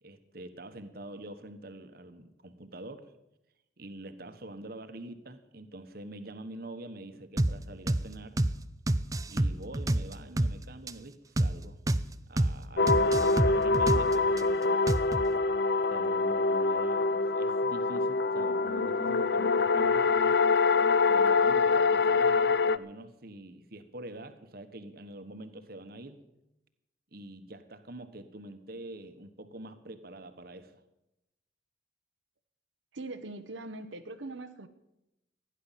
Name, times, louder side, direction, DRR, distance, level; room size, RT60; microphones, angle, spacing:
voice 1, 0.0-3.1 3.8-8.4 9.3-11.8 12.3-15.2 15.9-20.3 21.1-26.2 27.1-30.8, right 1 dB, 50° right, 9 dB, 1.3 m, -45 dB
sound 1, 7.4-7.6 7.9-8.1 8.4-8.6 8.9-10.6 10.9-11.0 11.4-11.6 11.9-12.1 12.4-12.6 12.9-14.4 14.9-15.3, right 1 dB, 15° right, 0.5 m, -27 dB
sound 2, 12.8-22.8, left 4 dB, 55° left, 0.5 m, -25 dB
voice 2, 32.9-34.7, right 2 dB, 75° right, 6 dB, 1.0 m, -41 dB
16.0 x 10.5 x 7.4 m, 0.90 s
head